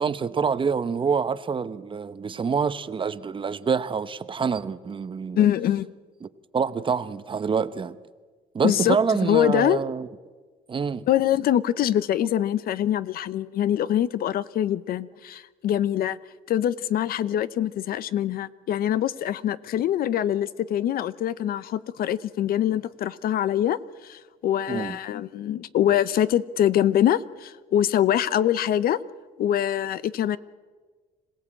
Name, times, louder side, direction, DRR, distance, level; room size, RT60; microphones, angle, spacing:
voice 1, 0.0-5.5 6.2-6.3 6.5-8.0 8.5-10.1 10.7-11.1 24.7-25.0, right 6 dB, 30° right, 0.9 m, -26 dB
voice 2, 5.4-5.9 8.6-9.8 11.1-16.2 16.5-29.0 29.4-30.4, left 11 dB, 60° left, 0.8 m, -24 dB
26.0 x 17.0 x 8.8 m
cardioid pair, 110°, 17 cm